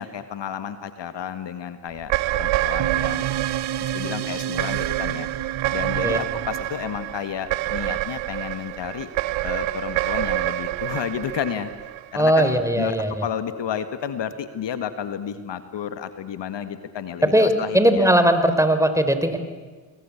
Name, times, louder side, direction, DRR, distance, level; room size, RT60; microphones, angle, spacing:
voice 1, 0.0-3.3 3.8-5.3 5.7-9.1 9.4-11.7 12.1-13.0 13.2-18.1, left 8 dB, 65° left, 11 dB, 1.8 m, -31 dB
sound 1, 2.0-12.5, right 17 dB, 75° right, 0.8 m, -27 dB
sound 2, 2.8-7.6, right 10 dB, 55° right, 1.1 m, -31 dB
voice 2, 12.1-13.3 17.2-19.4, right 1 dB, 5° right, 9 dB, 4.0 m, -19 dB
27.5 x 21.5 x 8.5 m, 1.4 s
hypercardioid pair, 45°, 47 cm